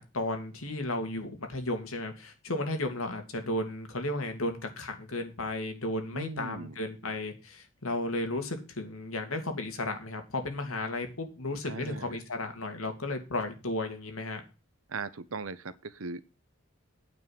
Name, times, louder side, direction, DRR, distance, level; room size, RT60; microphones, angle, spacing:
voice 1, 0.0-14.4, left 2 dB, 90° left, 2.7 m, -34 dB
voice 2, 6.1-6.8 11.6-12.2 14.9-16.2, right 4 dB, 85° right, 1.0 m, -38 dB
9.5 x 5.5 x 7.7 m
head